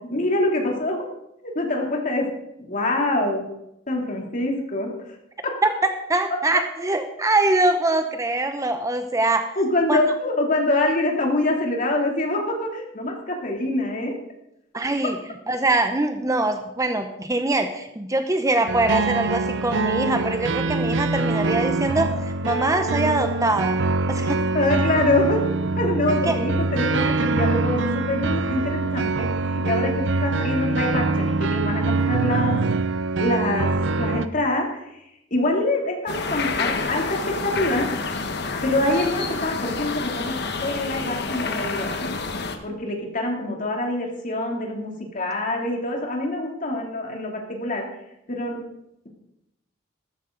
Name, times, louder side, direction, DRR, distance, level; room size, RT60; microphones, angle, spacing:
voice 1, 0.1-1.0 1.4-2.2 2.6-3.4 3.9-4.9 5.4-5.5 9.6-14.1 24.5-25.4 25.8-29.3 29.6-32.6 33.2-34.8 35.3-38.1 38.6-42.2 42.6-47.9 48.3-48.6, left 2 dB, 40° left, 1 dB, 2.9 m, -25 dB
voice 2, 6.1-9.5 9.9-10.0 14.7-15.2 15.5-23.8 24.1-24.4 26.3-26.4, right 2 dB, 15° right, 7 dB, 0.8 m, -23 dB
sound 1, 18.7-34.3, right 3 dB, 65° right, 0.7 m, -24 dB
sound 2, 36.1-42.6, left 4 dB, 60° left, 1.3 m, -28 dB
13.5 x 13.5 x 3.9 m, 0.84 s
head